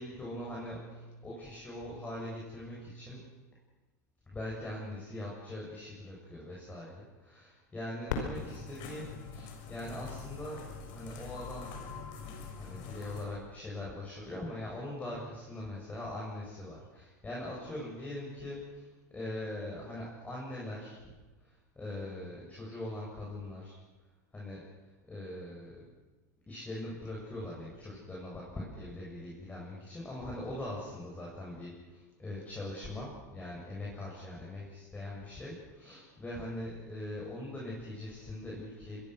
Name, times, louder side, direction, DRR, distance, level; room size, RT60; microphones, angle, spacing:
voice 1, 0.0-3.2 4.3-10.7 10.9-11.9 12.6-21.1 21.4-23.8 24.3-24.7 25.1-25.8 26.5-39.0, left 1 dB, 15° left, -4 dB, 7.8 m, -42 dB
Fireworks, 8.1-10.8 11.5-11.6 12.3-12.8 14.7-14.8, left 5 dB, 75° left, 5.1 m, -41 dB
sound 1, 8.3-13.2, left 4 dB, 55° left, 6.8 m, -44 dB
26.0 x 22.0 x 6.4 m, 1.2 s
hypercardioid pair, 105°, 9 cm